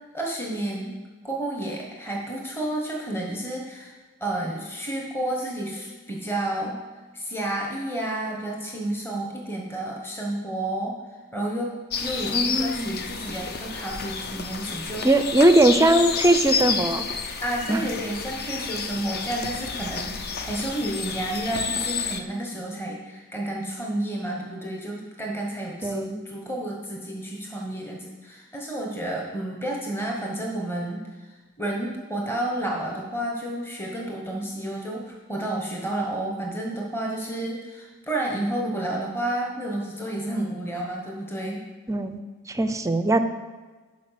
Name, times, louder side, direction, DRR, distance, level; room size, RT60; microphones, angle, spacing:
voice 1, 0.1-6.8 7.1-11.0 11.3-15.1 17.4-41.6, right 1 dB, 10° left, -1 dB, 1.2 m, -31 dB
sound 1, 11.9-22.2, left 5 dB, 45° left, 0.6 m, -30 dB
voice 2, 12.3-12.9 15.0-17.0 17.7-17.9 25.8-26.2 41.9-42.2 42.5-43.2, right 1 dB, 15° right, 9 dB, 0.5 m, -20 dB
12.0 x 4.7 x 5.8 m, 1.3 s
head